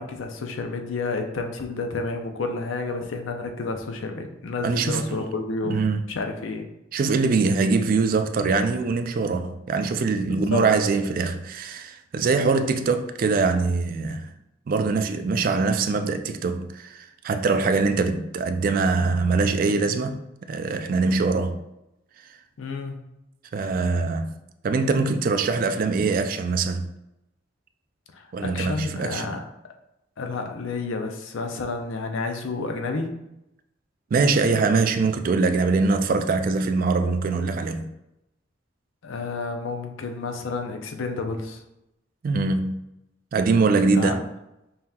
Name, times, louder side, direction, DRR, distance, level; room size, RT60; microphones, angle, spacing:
voice 1, 0.0-6.7 10.3-10.6 22.6-22.9 28.1-29.4 30.2-33.1 39.0-41.6 43.9-44.2, left 3 dB, 85° left, 0.5 m, -30 dB
voice 2, 4.6-5.2 5.7-6.1 6.9-14.3 14.7-20.2 20.5-21.6 23.5-24.3 24.6-26.8 28.3-29.3 34.1-37.9 42.2-42.8 43.3-44.2, right 4 dB, 45° right, 0.3 m, -23 dB
5.4 x 2.8 x 2.3 m
head